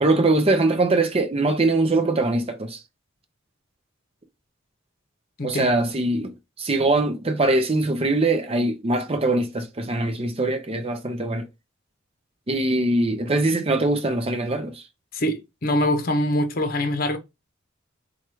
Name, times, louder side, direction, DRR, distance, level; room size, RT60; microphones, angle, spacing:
voice 1, 0.0-2.8 5.4-11.5 12.5-14.8, right 2 dB, 30° right, 0.6 m, -22 dB
voice 2, 5.4-5.8 15.1-17.2, left 1 dB, 45° left, 0.8 m, -24 dB
4.7 x 2.3 x 4.4 m
head